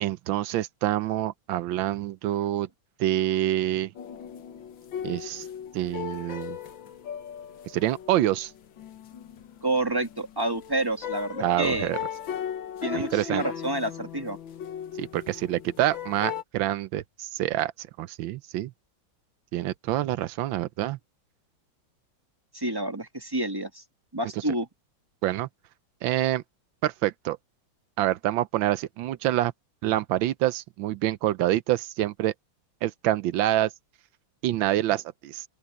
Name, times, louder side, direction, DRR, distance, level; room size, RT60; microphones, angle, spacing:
voice 1, 0.0-2.7 3.0-3.9 5.0-5.4 5.7-6.6 7.7-8.5 11.4-12.0 12.9-13.4 15.0-18.7 19.5-21.0 25.2-25.5 26.0-26.4 26.8-27.4 28.0-29.5 29.8-32.3 32.8-33.7 34.4-35.4, right 14 dB, 90° right, 1.4 m, -26 dB
sound 1, 3.9-16.4, left 8 dB, 80° left, 2.0 m, -38 dB
voice 2, 9.6-11.9 12.8-14.4 22.5-23.8 24.1-24.7, right 1 dB, 15° right, 1.3 m, -29 dB
open air
omnidirectional pair, 2.1 m